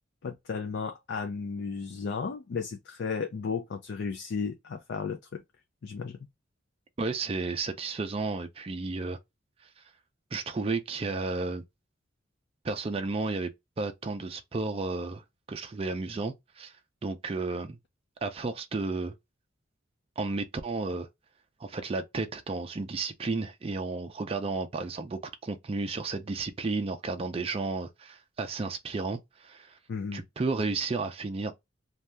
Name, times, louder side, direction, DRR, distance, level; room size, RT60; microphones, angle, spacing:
voice 1, 0.2-5.4 5.8-6.2 29.9-30.2, left 5 dB, 60° left, 0.4 m, -34 dB
voice 2, 7.0-9.2 10.3-11.6 12.6-13.5 13.8-15.2 15.5-16.7 17.0-17.8 18.2-19.2 20.2-21.1 21.6-29.8 30.1-31.5, right 3 dB, 30° right, 0.4 m, -32 dB
2.6 x 2.3 x 3.2 m
head